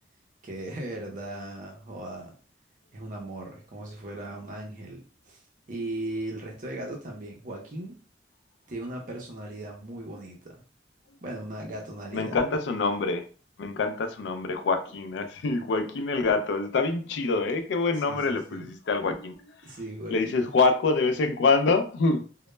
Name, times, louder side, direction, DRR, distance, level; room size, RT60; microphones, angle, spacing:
voice 1, 0.4-2.3 2.9-5.4 5.7-8.0 8.7-10.6 11.2-12.4 18.1-18.8 19.6-20.4, right 1 dB, 45° right, 0 dB, 0.5 m, -38 dB
voice 2, 12.1-13.2 13.6-19.4 20.1-22.3, left 3 dB, 75° left, 8 dB, 0.4 m, -25 dB
2.0 x 2.0 x 3.1 m, 0.38 s
head